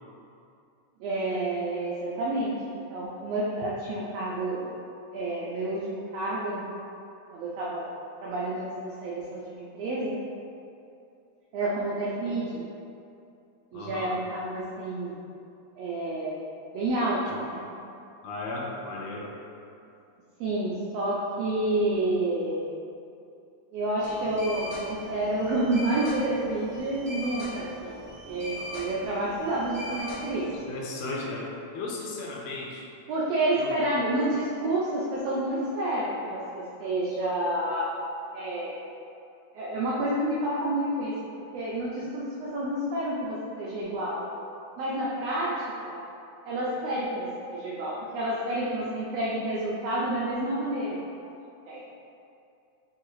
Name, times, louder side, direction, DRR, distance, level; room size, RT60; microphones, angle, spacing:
voice 1, 1.0-2.5 2.9-4.7 5.1-6.6 7.3-7.8 8.2-10.1 11.5-12.6 13.7-15.1 15.8-16.4 16.7-17.6 20.4-22.7 23.7-27.9 28.3-30.5 33.1-37.9 38.3-38.8 39.5-41.1 41.5-44.2 44.8-45.5 45.9-46.0 46.4-51.3 51.7-51.8, right 1 dB, 75° right, -6 dB, 1.5 m, -29 dB
voice 2, 13.7-14.1 17.3-17.4 18.2-19.3 30.7-32.8 33.6-33.9, left 2 dB, 75° left, -3 dB, 1.7 m, -35 dB
sound 1, 24.0-30.6, left 1 dB, 35° left, 0.4 m, -39 dB
4.7 x 3.3 x 3.0 m, 2.6 s
omnidirectional pair, 3.3 m